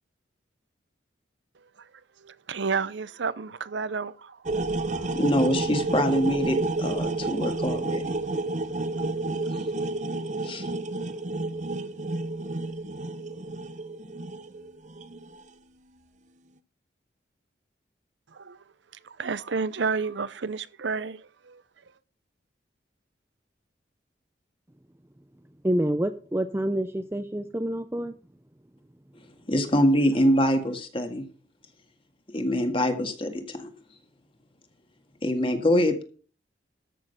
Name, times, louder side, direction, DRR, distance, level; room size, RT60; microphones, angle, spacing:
voice 1, 2.2-4.4 4.9-5.1 18.3-18.6 19.0-21.6, right 5 dB, 75° right, 0.6 m, -31 dB
sound 1, 4.5-15.4, right 2 dB, 40° right, 0.8 m, -30 dB
voice 2, 5.1-8.1 10.4-10.7 29.5-31.3 32.3-33.7 35.2-36.0, equal, 30° left, 1.8 m, -24 dB
voice 3, 25.6-28.1, right 1 dB, 15° right, 0.5 m, -27 dB
13.5 x 6.4 x 6.5 m
head